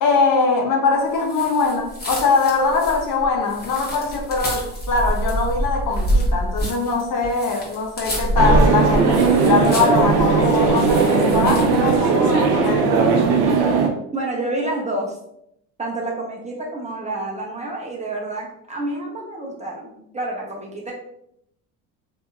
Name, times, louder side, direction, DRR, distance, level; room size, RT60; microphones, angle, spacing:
voice 1, 0.0-13.1, left 4 dB, 50° left, 0.7 m, -22 dB
sound 1, 1.2-11.9, right 1 dB, 20° left, 1.2 m, -26 dB
sound 2, 8.4-13.9, right 5 dB, 70° right, 0.7 m, -18 dB
voice 2, 14.1-15.2 15.8-20.9, right 2 dB, 15° right, 0.7 m, -28 dB
2.7 x 2.7 x 2.3 m
supercardioid pair, 85°, 43 cm